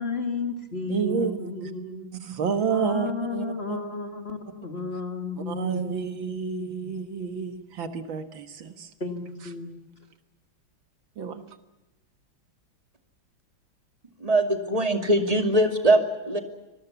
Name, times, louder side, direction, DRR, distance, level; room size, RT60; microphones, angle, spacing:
voice 1, 0.0-2.1 2.7-6.7 7.5-7.6 9.0-9.7, left 3 dB, 30° left, 6 dB, 2.2 m, -33 dB
voice 2, 0.9-1.7 2.2-3.8 5.5-8.9 11.2-11.4, right 6 dB, 75° right, 9 dB, 2.3 m, -30 dB
voice 3, 14.2-16.4, right 1 dB, 20° right, 5 dB, 2.5 m, -22 dB
26.0 x 20.5 x 7.1 m, 1.0 s
omnidirectional pair, 2.2 m